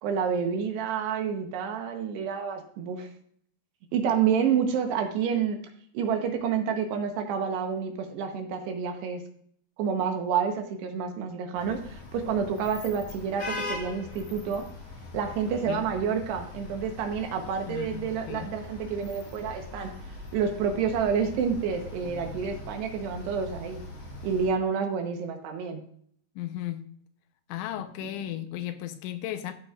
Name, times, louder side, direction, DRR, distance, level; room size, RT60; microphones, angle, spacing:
voice 1, 0.0-3.1 3.9-5.6 5.9-9.2 9.8-14.6 15.1-19.9 20.3-23.8 24.2-25.8 28.0-28.1, right 7 dB, 75° right, 4 dB, 3.0 m, -29 dB
sound 1, 11.6-24.5, left 3 dB, 50° left, 3.1 m, -41 dB
voice 2, 17.7-18.5 26.4-26.9 27.5-29.5, left 12 dB, 90° left, 9 dB, 3.1 m, -35 dB
14.0 x 7.9 x 2.5 m, 0.62 s
omnidirectional pair, 5.3 m